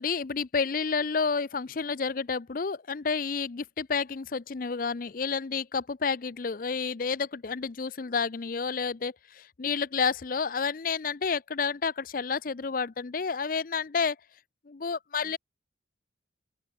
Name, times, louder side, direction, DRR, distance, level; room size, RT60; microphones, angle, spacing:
voice 1, 0.0-14.2 14.7-15.4, left 5 dB, 45° left, 0.5 m, -30 dB
open air
head